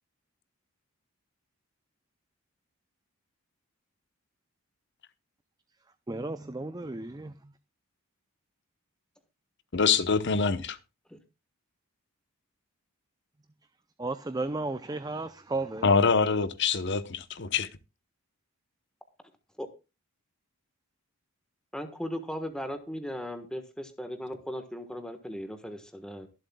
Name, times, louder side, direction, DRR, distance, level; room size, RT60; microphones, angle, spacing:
voice 1, 6.1-7.5 14.0-16.0, right 2 dB, 15° right, 0.5 m, -34 dB
voice 2, 9.7-10.8 15.8-17.7, left 5 dB, 50° left, 0.9 m, -25 dB
voice 3, 21.7-26.3, equal, 5° left, 1.3 m, -37 dB
23.0 x 7.7 x 2.3 m
head